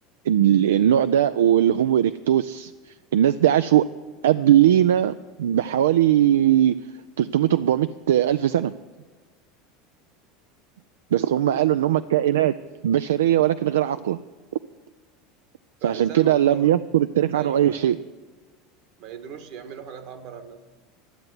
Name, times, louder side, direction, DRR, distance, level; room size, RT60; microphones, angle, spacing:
voice 1, 0.3-2.7 3.1-3.9 4.2-5.1 5.4-6.8 7.2-8.7 11.1-12.5 12.8-14.2 15.8-18.0, right 11 dB, 85° right, 12 dB, 0.3 m, -19 dB
voice 2, 11.1-11.7 15.8-16.8 17.3-17.9 19.0-20.6, right 7 dB, 65° right, 8 dB, 1.5 m, -39 dB
12.5 x 7.7 x 9.5 m, 1.3 s
hypercardioid pair, 90°, 0 cm